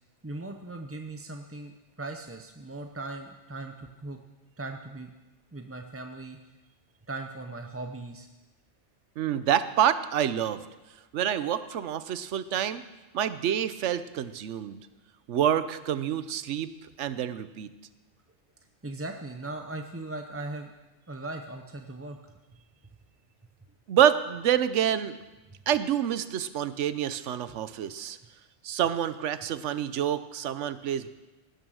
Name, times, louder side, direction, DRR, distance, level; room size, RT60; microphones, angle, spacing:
voice 1, 0.2-4.2 4.6-5.1 5.5-6.4 7.1-8.3 18.8-20.7 21.1-22.4, right 2 dB, 15° right, 4 dB, 0.5 m, -39 dB
voice 2, 9.2-10.6 11.1-12.8 13.1-14.8 15.3-16.7 17.0-17.7 23.9-25.2 25.7-28.2 28.6-31.1, right 10 dB, 80° right, 13 dB, 1.0 m, -27 dB
17.0 x 9.6 x 6.3 m, 1.1 s
omnidirectional pair, 1.2 m